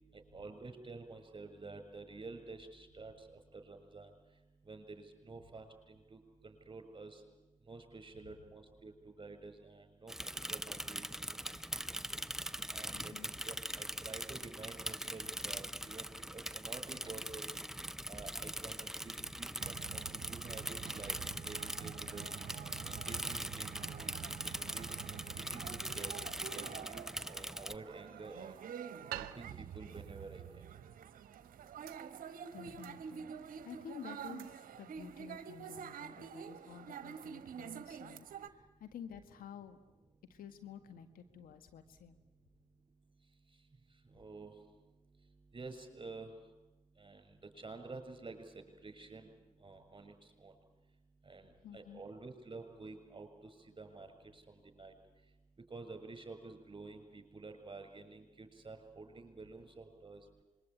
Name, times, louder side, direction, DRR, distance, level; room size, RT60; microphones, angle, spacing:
voice 1, 0.1-3.1 3.5-4.1 4.7-7.2 7.7-10.1 10.5-11.0 11.5-11.7 12.7-13.1 13.4-16.1 16.3-17.5 18.1-21.1 21.4-22.5 23.1-23.7 24.0-24.2 24.4-24.9 25.5-26.1 26.5-28.6 29.1-30.4 44.1-44.5 45.5-46.3 47.0-47.2 47.6-49.3 49.6-50.1 50.4-50.5 51.2-54.1 54.3-54.9 55.7-60.2, right 3 dB, 30° right, 7 dB, 6.6 m, -50 dB
Bicycle / Mechanisms, 10.1-27.7, equal, 5° right, 0.8 m, -42 dB
voice 2, 12.9-13.3 32.2-39.8 40.3-42.2 51.6-52.0, left 8 dB, 75° left, 9 dB, 1.8 m, -52 dB
sound 1, 19.6-38.5, right 8 dB, 70° right, 1.2 m, -48 dB
sound 2, 26.8-37.0, right 14 dB, 85° right, 0.9 m, -54 dB
26.0 x 22.5 x 8.9 m, 1.1 s
hypercardioid pair, 45°, 15 cm